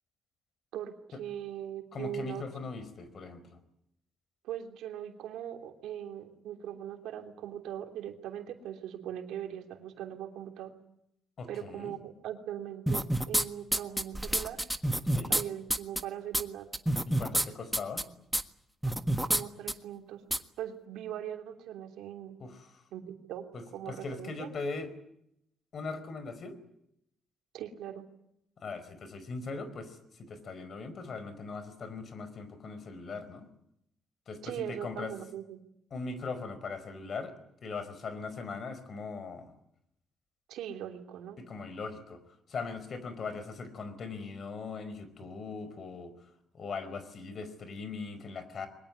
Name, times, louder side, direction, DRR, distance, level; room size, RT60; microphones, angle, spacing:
voice 1, 0.7-2.5 4.4-10.7 11.5-14.6 15.3-16.7 18.8-19.0 19.2-20.2 20.6-22.4 22.9-24.5 27.5-28.1 34.4-35.6 40.5-41.4, right 10 dB, 85° right, 5 dB, 3.0 m, -40 dB
voice 2, 1.9-3.6 11.4-11.9 15.1-15.3 17.1-18.1 22.4-22.7 23.9-24.9 25.7-26.6 28.6-33.5 34.3-34.4 34.7-35.1 35.9-39.5 41.5-42.2 42.5-46.1 46.5-48.7, left 4 dB, 50° left, 13 dB, 4.9 m, -40 dB
sound 1, 12.9-13.4 13.7-15.4 15.7-16.0 16.3-16.4 16.7-17.4 17.7-18.0 18.3-18.4 18.8-19.4 19.7-19.8 20.3-20.4, right 1 dB, 5° right, 1.5 m, -28 dB
22.5 x 21.0 x 9.6 m, 0.77 s
cardioid pair, 90°, 0 cm